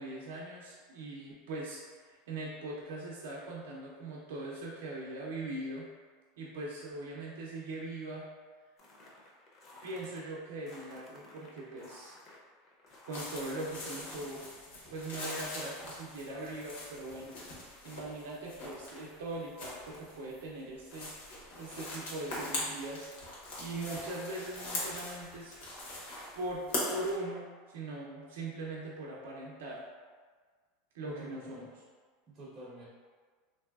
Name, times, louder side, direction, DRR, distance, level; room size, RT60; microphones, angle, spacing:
voice 1, 0.0-5.9 6.4-8.3 9.8-12.1 13.1-14.4 14.9-23.1 23.6-25.7 26.4-26.6 26.9-29.9 30.9-31.7, right 2 dB, 85° right, -4 dB, 0.5 m, -41 dB
sound 1, 8.8-10.2 10.6-14.2, left 2 dB, 30° left, 0.5 m, -54 dB
sound 2, 13.1-27.2, left 1 dB, 70° left, 0.9 m, -41 dB
voice 2, 31.0-31.7 32.3-32.8, right 2 dB, 25° right, -8 dB, 0.5 m, -49 dB
3.1 x 2.6 x 2.3 m, 1.5 s
supercardioid pair, 160°, 0 cm